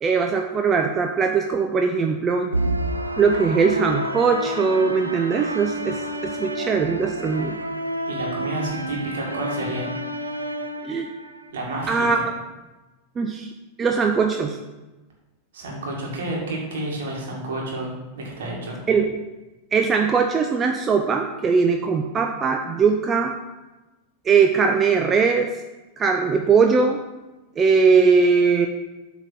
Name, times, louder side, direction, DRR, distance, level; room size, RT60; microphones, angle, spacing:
voice 1, 0.0-2.5 3.2-7.6 10.8-11.1 11.9-12.2 13.2-13.5 13.8-14.6 18.9-19.1 19.7-23.3 24.3-25.5 26.0-27.0 27.6-28.7, right 5 dB, 20° right, 4 dB, 0.5 m, -20 dB
sound 1, 2.5-11.5, right 1 dB, 85° right, 0.5 m, -29 dB
voice 2, 8.1-9.9 11.5-12.2 15.5-18.8, right 1 dB, 60° right, -2 dB, 2.1 m, -30 dB
7.9 x 4.0 x 5.7 m, 1.1 s
figure-of-eight pair, 90°, 0 cm